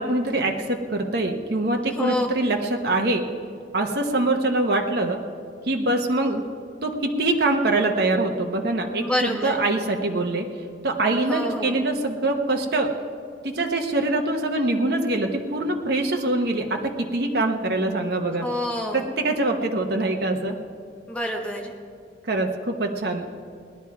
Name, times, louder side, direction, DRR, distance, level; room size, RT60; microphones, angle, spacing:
voice 1, 0.0-3.2 3.7-5.2 5.7-6.4 6.8-10.5 10.8-12.9 13.4-18.5 18.9-20.6 22.2-23.2, right 2 dB, 55° right, 2 dB, 0.9 m, -24 dB
voice 2, 9.0-9.6 11.3-11.9 18.4-19.0 21.1-21.7, left 1 dB, 5° left, 1 dB, 1.2 m, -27 dB
19.0 x 10.5 x 4.7 m, 2.2 s
head